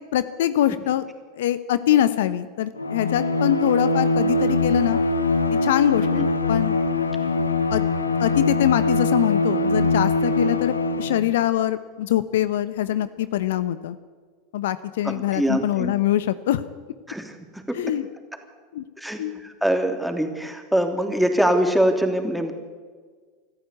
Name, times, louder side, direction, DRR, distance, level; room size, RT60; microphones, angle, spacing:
voice 1, 0.1-1.0 1.3-5.0 5.6-6.7 7.7-7.8 8.2-14.0 14.5-16.6 17.7-18.0 18.7-18.8 19.2-19.3, left 12 dB, 70° left, 14 dB, 0.9 m, -23 dB
Bowed string instrument, 2.8-11.3, left 2 dB, 90° left, 1.4 m, -22 dB
voice 2, 15.0-15.9 17.1-17.8 19.0-22.5, right 1 dB, ahead, 4 dB, 3.2 m, -23 dB
25.0 x 14.5 x 8.5 m, 1.5 s
figure-of-eight pair, 85°, 0 cm